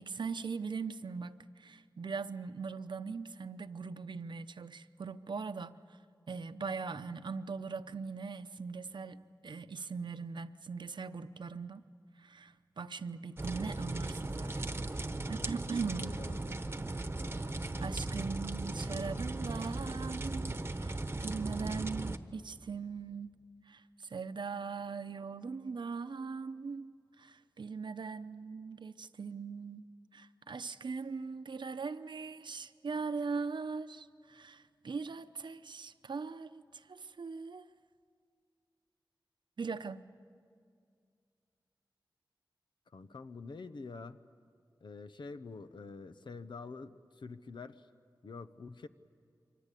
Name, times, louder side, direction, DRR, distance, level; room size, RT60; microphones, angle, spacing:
voice 1, 0.0-5.8 6.3-11.8 12.2-14.8 15.3-16.1 17.8-23.3 23.7-26.9 27.2-29.9 30.1-37.7 39.6-40.1, right 5 dB, 80° right, 0.8 m, -40 dB
sound 1, 13.4-22.2, right 2 dB, 30° right, 1.1 m, -37 dB
voice 2, 16.0-16.6 42.9-44.2 44.8-47.9 48.2-48.9, left 4 dB, 90° left, 0.8 m, -46 dB
28.5 x 24.0 x 8.4 m
wide cardioid pair, 90°, 8 cm